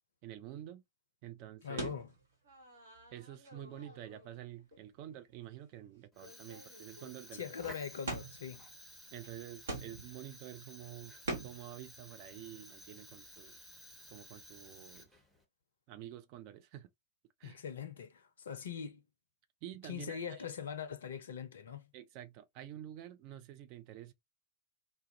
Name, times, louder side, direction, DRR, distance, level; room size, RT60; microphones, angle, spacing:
voice 1, 0.2-0.8 1.2-1.9 3.1-7.6 9.1-11.1 11.4-13.6 14.1-15.1 15.9-16.9 17.4-17.6 19.6-20.4 21.9-24.1, right 12 dB, 45° right, 0.4 m, -49 dB
voice 2, 1.6-2.1 7.3-8.6 17.4-19.0 19.8-21.9, left 7 dB, 65° left, 0.4 m, -42 dB
sound 1, 1.8-4.4 4.7-4.8 5.4-5.6 5.8-5.9 6.1-7.1 8.0-8.6 9.2-9.3 9.6-10.3 11.2-11.7, right 2 dB, 60° right, 1.1 m, -44 dB
Fire, 6.1-15.4, equal, 5° right, 0.9 m, -54 dB
2.3 x 2.1 x 2.6 m
figure-of-eight pair, 90°, 0 cm